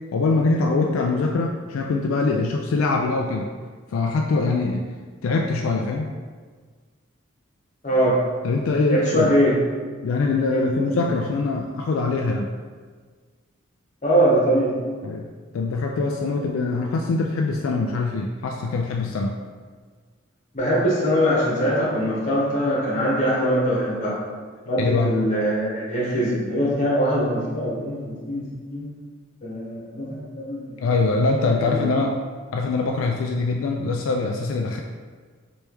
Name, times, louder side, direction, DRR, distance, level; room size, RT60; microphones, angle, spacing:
voice 1, 0.1-3.5 3.9-4.9 5.2-6.1 8.4-9.3 10.0-12.5 15.0-15.3 15.5-19.4 24.8-25.1 30.8-32.2 32.5-34.8, left 3 dB, 80° left, 1 dB, 0.3 m, -23 dB
voice 2, 7.8-8.2 8.9-9.6 10.5-11.0 14.0-14.8 20.5-24.2 24.7-28.8 29.4-30.9 31.6-31.9, equal, 35° left, -6 dB, 1.3 m, -22 dB
3.4 x 3.1 x 4.6 m, 1.5 s
head